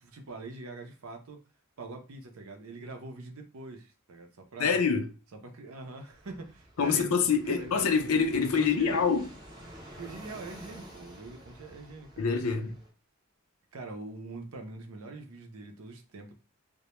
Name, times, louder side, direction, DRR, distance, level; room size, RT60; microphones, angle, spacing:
voice 1, 0.0-1.4 1.8-4.8 5.3-7.9 8.4-9.0 10.0-12.3 13.7-16.3, right 3 dB, 70° right, 0.6 m, -43 dB
voice 2, 4.6-5.1 6.8-9.2 12.2-12.8, left 5 dB, 75° left, 0.4 m, -26 dB
Fixed-wing aircraft airplane, 6.1-12.9, right 1 dB, 20° right, 0.7 m, -50 dB
2.1 x 2.1 x 2.9 m
head